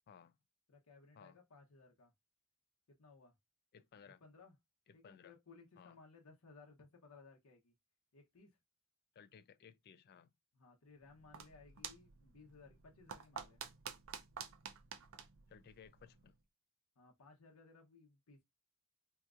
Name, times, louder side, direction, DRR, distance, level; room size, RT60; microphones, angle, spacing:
voice 1, 0.7-2.1 3.0-3.3 4.0-4.6 4.9-7.7 8.1-8.6 10.5-13.6 17.0-18.4, left 4 dB, 70° left, 0.8 m, -61 dB
voice 2, 3.7-4.2 4.9-5.3 5.8-6.0 9.2-10.3 15.5-16.3, left 7 dB, 45° left, 0.3 m, -60 dB
sound 1, 11.0-16.4, right 7 dB, 60° right, 0.5 m, -51 dB
2.8 x 2.4 x 3.5 m
head